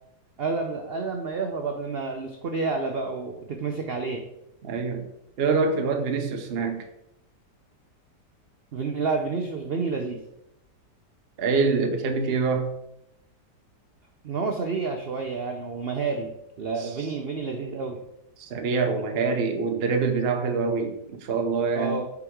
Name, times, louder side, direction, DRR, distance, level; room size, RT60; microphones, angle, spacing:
voice 1, 0.4-4.2 8.7-10.2 14.2-16.3 16.6-18.0 21.7-22.1, right 4 dB, 65° right, 4 dB, 0.6 m, -29 dB
voice 2, 4.6-5.1 5.4-6.9 11.4-12.7 16.8-16.9 18.4-22.0, right 4 dB, 45° right, 5 dB, 0.9 m, -25 dB
7.2 x 4.0 x 4.6 m, 0.83 s
omnidirectional pair, 1.8 m